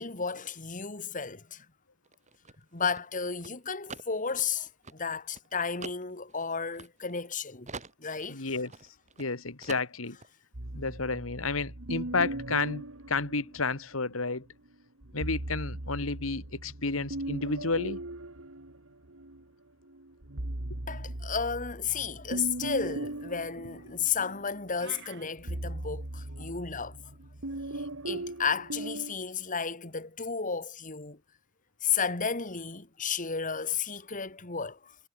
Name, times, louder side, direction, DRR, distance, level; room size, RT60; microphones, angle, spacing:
voice 1, 0.0-1.7 2.7-7.7 8.0-8.5 20.9-27.0 27.7-31.2 31.8-35.0, left 6 dB, 40° left, 2.7 m, -33 dB
sound 1, 2.0-7.3 7.7-9.3 9.6-10.3, right 4 dB, 35° right, 2.9 m, -45 dB
voice 2, 8.3-8.7 9.2-10.2 10.7-14.5 15.1-18.0, left 3 dB, 90° left, 2.3 m, -31 dB
sound 2, 10.5-14.0 15.0-19.4 19.9-29.1, right 1 dB, 90° right, 2.5 m, -39 dB
sound 3, 24.7-25.2, right 9 dB, 60° right, 4.3 m, -47 dB
head